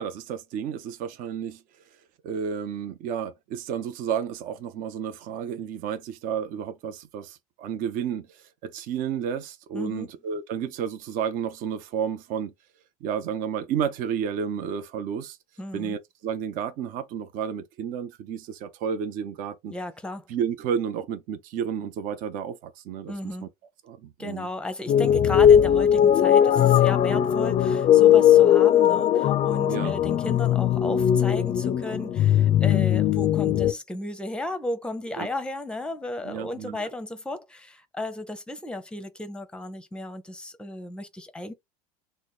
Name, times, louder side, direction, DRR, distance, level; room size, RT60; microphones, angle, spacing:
voice 1, 0.0-1.6 2.2-12.5 13.0-15.4 15.7-19.7 20.3-23.5 23.8-24.5 29.7-29.9 35.2-35.3 36.2-36.9, right 8 dB, 50° right, 0.6 m, -31 dB
voice 2, 9.7-10.1 15.6-16.0 19.7-20.2 23.1-23.5 24.2-41.5, left 1 dB, 5° left, 0.7 m, -34 dB
sound 1, 24.9-33.7, left 10 dB, 35° left, 0.5 m, -19 dB
3.0 x 2.1 x 3.9 m
hypercardioid pair, 80°, 18 cm